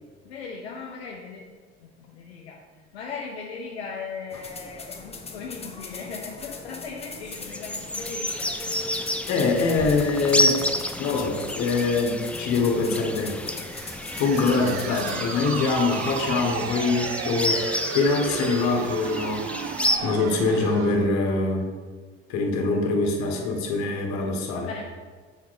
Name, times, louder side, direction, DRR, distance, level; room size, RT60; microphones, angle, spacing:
voice 1, 0.2-1.5 1.8-2.6 2.9-9.4 9.8-10.3 14.3-15.7 22.9-23.8 24.5-24.9, left 5 dB, 80° left, -1 dB, 0.7 m, -38 dB
sound 1, 4.3-15.2, left 4 dB, 20° left, 0.9 m, -40 dB
sound 2, 7.2-20.0, left 1 dB, 5° left, 0.5 m, -30 dB
voice 2, 9.3-10.6 11.0-13.4 14.2-17.7 17.9-21.7 22.3-24.7, left 3 dB, 60° left, 2 dB, 1.3 m, -24 dB
sound 3, 13.6-21.1, right 9 dB, 45° right, 0.5 m, -33 dB
6.9 x 4.6 x 4.1 m, 1.5 s
hypercardioid pair, 65°, 31 cm